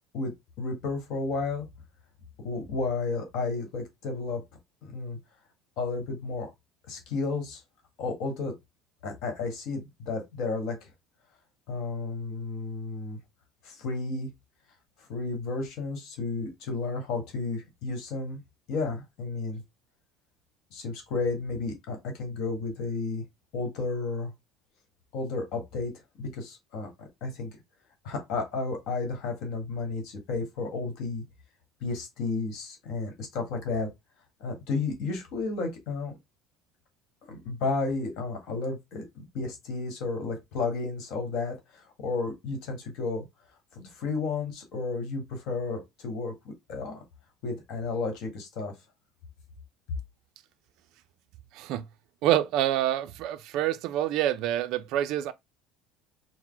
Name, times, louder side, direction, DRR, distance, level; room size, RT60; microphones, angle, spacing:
voice 1, 0.6-1.7 2.4-4.4 4.8-5.2 5.8-6.5 6.9-7.6 8.0-8.5 9.0-10.9 11.7-13.2 13.6-14.3 15.0-18.4 18.7-19.6 20.7-23.2 23.5-24.3 25.1-25.9 26.2-27.6 28.0-31.2 31.8-33.9 34.4-36.1 37.2-43.2 43.7-47.0 47.4-48.7, left 3 dB, 50° left, 1.5 m, -32 dB
voice 2, 51.5-51.8 52.2-55.3, right 12 dB, 50° right, 0.4 m, -27 dB
4.5 x 2.0 x 3.8 m
cardioid pair, 170°, 0 cm